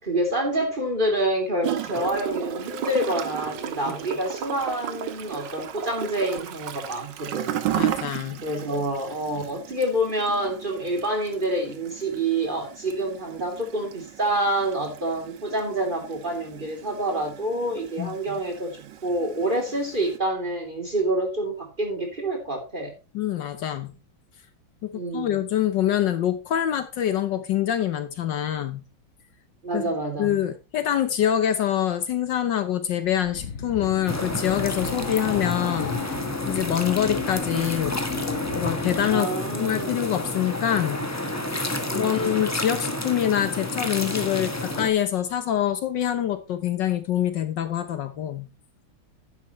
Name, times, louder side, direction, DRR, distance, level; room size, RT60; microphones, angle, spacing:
voice 1, 0.0-7.7 8.4-18.8 19.0-22.9 24.9-25.4 29.6-30.3 39.1-40.1 41.8-42.5, right 1 dB, 25° right, 3.2 m, -27 dB
Gurgling / Toilet flush, 1.6-20.2, right 10 dB, 65° right, 1.6 m, -35 dB
voice 2, 7.7-8.4 18.0-18.1 23.1-24.0 24.8-28.9 29.7-29.8 30.2-36.0 36.5-38.0 38.5-41.1 41.9-48.5, left 10 dB, 65° left, 1.4 m, -25 dB
sound 1, 33.0-39.3, left 6 dB, 40° left, 1.2 m, -35 dB
sound 2, 34.1-44.9, left 1 dB, 10° left, 0.9 m, -30 dB
10.5 x 9.7 x 3.1 m
omnidirectional pair, 2.2 m